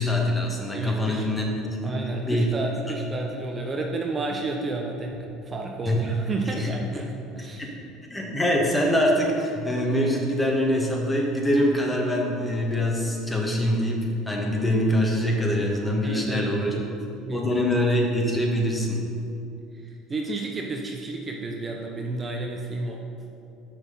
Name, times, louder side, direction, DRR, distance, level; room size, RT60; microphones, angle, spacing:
voice 1, 0.0-2.0 2.2-2.5 5.9-6.0 6.6-6.7 7.6-7.7 8.1-16.7 17.3-19.0, left 1 dB, 15° left, 0 dB, 1.5 m, -24 dB
voice 2, 0.7-1.3 1.6-5.2 5.4-7.7 16.0-16.9 17.2-17.5 19.7-23.0, right 2 dB, 30° right, 1 dB, 0.7 m, -31 dB
6.0 x 5.8 x 5.4 m, 2.6 s
hypercardioid pair, 75°, 0 cm